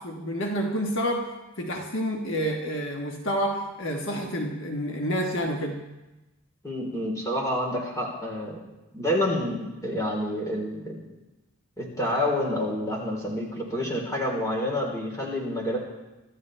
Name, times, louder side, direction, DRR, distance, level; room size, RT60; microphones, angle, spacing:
voice 1, 0.0-1.3 1.6-5.8, equal, 60° left, 1 dB, 1.4 m, -29 dB
voice 2, 6.6-8.6 8.9-11.0 11.8-15.8, left 1 dB, 15° left, -2 dB, 3.7 m, -28 dB
25.0 x 13.0 x 3.3 m, 1.0 s
head